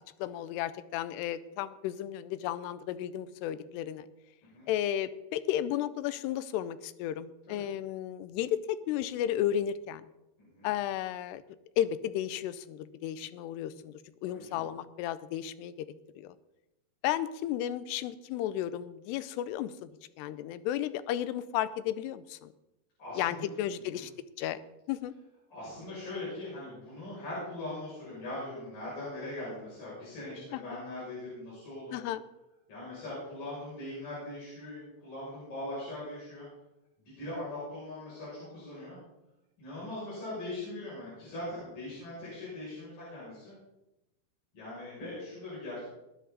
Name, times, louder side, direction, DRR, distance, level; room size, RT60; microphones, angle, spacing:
voice 1, 0.2-4.1 4.7-10.1 10.6-11.4 11.8-15.7 16.2-16.4 17.0-19.9 20.2-22.5 23.2-24.1 24.4-24.6 24.9-25.1 30.5-30.6 31.9-32.2, left 11 dB, 85° left, 13 dB, 2.8 m, -33 dB
voice 2, 10.4-10.7 14.3-14.6 23.0-23.5 23.9-24.0 25.5-32.0 32.7-36.5 37.0-39.0 39.6-43.5 44.5-45.8, left 1 dB, 55° left, -8 dB, 8.3 m, -41 dB
20.5 x 10.0 x 4.0 m, 0.93 s
omnidirectional pair, 4.7 m